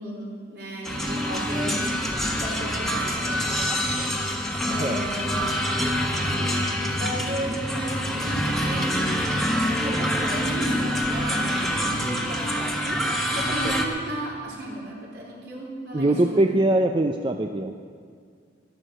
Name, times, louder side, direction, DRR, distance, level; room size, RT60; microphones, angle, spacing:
voice 1, 0.0-4.2 4.7-5.8 6.1-16.6, right 1 dB, 65° right, -3 dB, 3.9 m, -35 dB
sound 1, 0.8-13.9, equal, ahead, 1.4 m, -26 dB
voice 2, 7.2-7.5 12.0-12.3 13.6-13.7 15.9-17.7, right 1 dB, 30° right, 4 dB, 0.5 m, -23 dB
12.5 x 11.0 x 7.7 m, 2.1 s
head